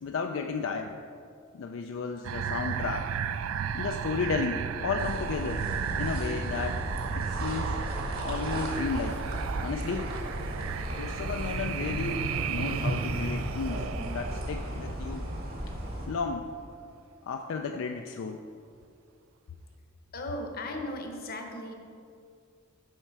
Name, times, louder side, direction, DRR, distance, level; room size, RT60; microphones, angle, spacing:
voice 1, 0.0-0.9 1.5-3.1 3.7-5.7 6.0-6.8 7.2-7.8 8.2-9.2 9.6-10.1 11.0-15.3 16.1-16.5 17.3-18.4, left 5 dB, 70° left, 4 dB, 0.4 m, -33 dB
sound 1, 2.2-15.9, right 7 dB, 85° right, 0.3 m, -34 dB
sound 2, 5.0-16.1, equal, 50° right, 1.6 m, -35 dB
voice 2, 20.1-21.7, left 1 dB, 50° left, 3 dB, 0.9 m, -36 dB
7.6 x 5.6 x 4.6 m, 2.3 s
head